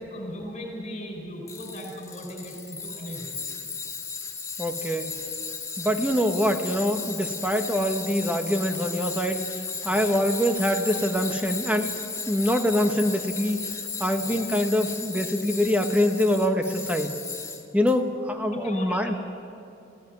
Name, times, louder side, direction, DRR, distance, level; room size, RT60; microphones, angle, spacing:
voice 1, 0.0-3.4 5.1-5.2 9.9-10.1 14.2-14.4 18.5-19.2, equal, 35° left, 1 dB, 5.3 m, -38 dB
Tools, 1.5-17.9, left 5 dB, 15° left, 1.7 m, -35 dB
voice 2, 4.6-5.1 5.8-9.4 9.8-12.0 12.3-13.7 14.0-17.1 17.7-19.1, equal, 10° right, 5 dB, 1.1 m, -24 dB
17.5 x 16.5 x 9.3 m, 2.7 s
head